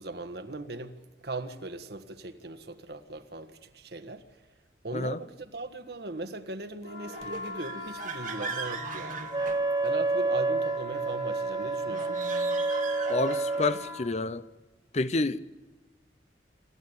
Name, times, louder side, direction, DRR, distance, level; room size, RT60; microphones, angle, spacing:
voice 1, 0.0-4.3 4.8-9.3 9.8-12.2, right 2 dB, 65° right, 1.5 m, -39 dB
sound 1, 6.8-14.0, left 1 dB, 75° left, 6.9 m, -41 dB
sound 2, 7.1-10.2 11.8-13.8, right 5 dB, 45° right, 1.6 m, -39 dB
Wind instrument woodwind instrument, 9.3-13.8, right 3 dB, 25° right, 1.7 m, -29 dB
voice 2, 13.1-14.4 14.9-15.4, left 3 dB, 40° left, 0.7 m, -29 dB
27.0 x 14.0 x 8.2 m
head